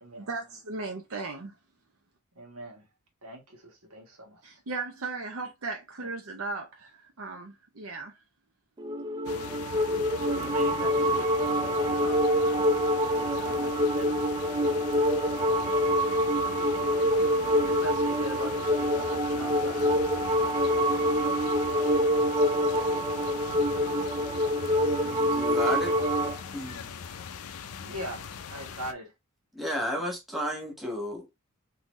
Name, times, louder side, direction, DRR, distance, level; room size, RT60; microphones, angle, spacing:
voice 1, 0.2-1.5 4.4-8.2, right 3 dB, 70° right, 0.7 m, -37 dB
voice 2, 2.3-2.9 3.2-4.6 6.0-6.1 10.3-14.2 14.5-14.8 17.6-20.0 27.8-29.1, equal, 90° right, 1.4 m, -42 dB
sound 1, 8.8-26.4, equal, 20° right, 0.3 m, -26 dB
sound 2, 9.3-28.9, left 6 dB, 85° left, 0.5 m, -41 dB
voice 3, 25.0-26.0 26.5-26.9 29.5-31.3, equal, ahead, 1.2 m, -33 dB
3.8 x 2.7 x 3.1 m
head